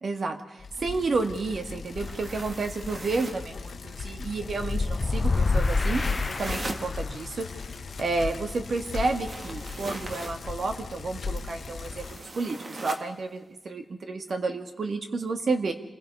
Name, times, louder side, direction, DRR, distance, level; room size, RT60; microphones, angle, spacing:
voice 1, 0.0-7.7 8.0-15.7, right 3 dB, 55° right, 6 dB, 1.9 m, -31 dB
Bicycle, 0.6-12.3, left 4 dB, 65° left, 1.1 m, -38 dB
sound 1, 1.8-3.5 5.5-6.9 8.9-10.4 11.9-13.1, right 2 dB, 40° right, 2.0 m, -39 dB
sound 2, 4.5-7.1, left 3 dB, 40° left, 0.7 m, -27 dB
27.5 x 21.0 x 5.5 m, 0.96 s
wide cardioid pair, 135°, 0 cm